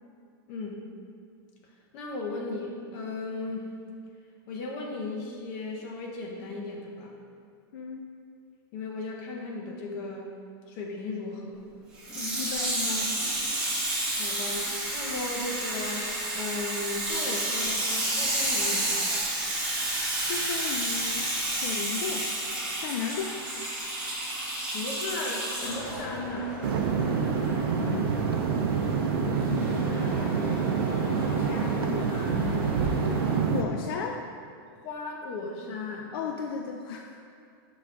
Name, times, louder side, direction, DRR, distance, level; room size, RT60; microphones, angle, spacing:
voice 1, 0.5-0.8 1.9-3.7 4.5-7.2 8.7-10.3 10.7-11.6 14.1-19.1 24.7-26.6 31.7-32.3 34.8-36.1, left 2 dB, 35° left, 0 dB, 0.7 m, -36 dB
voice 2, 7.7-8.1 12.2-13.2 20.3-22.3 22.7-23.4 27.8-28.2 29.2-30.1 31.2-32.7 33.4-34.2 36.1-37.2, left 6 dB, 75° left, 3 dB, 0.4 m, -35 dB
Water tap faucet / Sink (filling or washing), 12.0-26.0 26.7-26.8, right 1 dB, 5° right, 1.3 m, -30 dB
sound 1, 25.6-33.4, equal, 15° left, 1.4 m, -39 dB
sound 2, 26.6-33.6, right 6 dB, 80° right, 0.6 m, -27 dB
5.9 x 5.1 x 3.7 m, 2.3 s
supercardioid pair, 170°, 13 cm